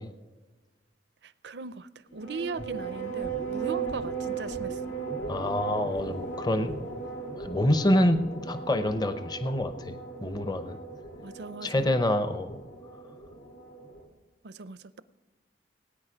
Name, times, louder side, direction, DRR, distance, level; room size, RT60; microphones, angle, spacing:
voice 1, 1.2-4.8 11.2-11.9 14.4-15.0, right 4 dB, 65° right, 16 dB, 0.5 m, -39 dB
sound 1, 2.1-14.0, right 4 dB, 85° left, 2.9 m, -37 dB
voice 2, 5.3-6.8 7.4-10.0 10.2-10.8 11.6-12.6, left 1 dB, 20° left, 10 dB, 0.7 m, -26 dB
18.0 x 9.4 x 5.1 m, 1.2 s
head